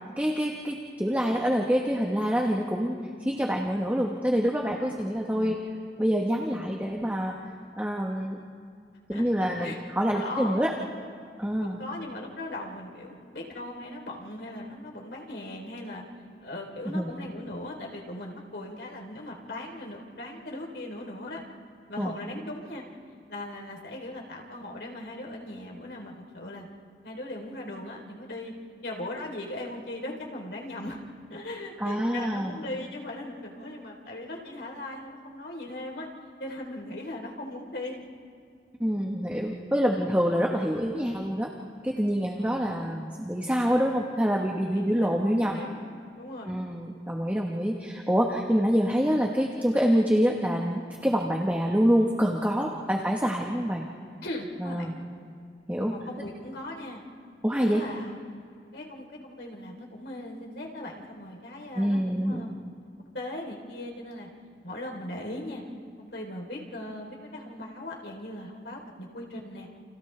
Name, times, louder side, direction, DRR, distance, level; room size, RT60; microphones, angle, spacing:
voice 1, 0.2-5.6 6.0-7.3 7.8-8.4 9.1-10.7 11.4-11.8 16.9-17.1 22.0-22.1 31.8-32.6 38.8-41.5 41.8-45.6 46.4-53.9 54.6-54.9 55.7-55.9 57.4-57.8 61.8-62.5, equal, 10° right, -1 dB, 1.2 m, -26 dB
voice 2, 10.1-10.6 11.6-16.0 16.4-21.4 21.9-22.8 23.3-26.7 27.0-28.5 28.8-31.0 31.3-36.1 36.4-38.0 42.2-42.5 44.7-45.1 45.3-45.8 46.2-46.6 52.7-53.0 54.2-54.9 55.7-57.0 57.5-58.2 58.7-62.6 63.1-64.3 64.6-65.6 66.0-69.7, left 1 dB, 80° left, 0 dB, 3.6 m, -39 dB
30.0 x 30.0 x 3.4 m, 2.3 s
head